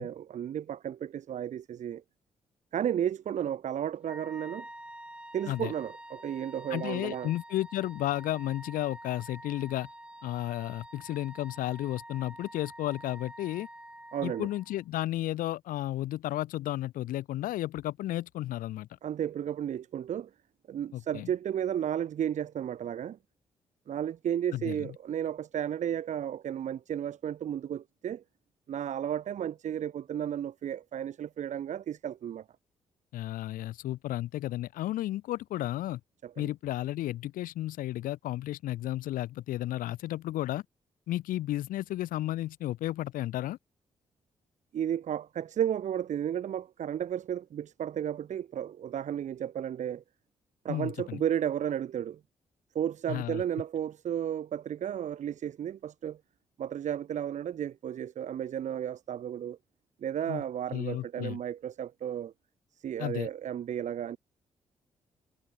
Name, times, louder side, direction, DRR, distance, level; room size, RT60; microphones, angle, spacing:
voice 1, 0.0-2.0 2.7-4.7 5.3-7.3 14.1-14.5 19.0-20.3 20.7-23.2 23.9-28.2 28.7-32.4 36.2-36.5 44.7-50.0 50.6-52.2 52.7-56.2 56.6-59.6 60.0-62.3 62.8-64.2, right 9 dB, 60° right, 0.6 m, -33 dB
Wind instrument woodwind instrument, 4.0-14.8, right 1 dB, 10° right, 7.2 m, -48 dB
voice 2, 6.7-9.9 10.2-13.7 14.2-18.9 20.9-21.3 24.5-24.9 33.1-36.0 36.4-40.6 41.1-43.6 50.7-51.2 53.1-53.4 60.3-60.4 60.7-61.4 63.0-63.3, left 14 dB, 75° left, 0.9 m, -33 dB
hypercardioid pair, 45°, 14 cm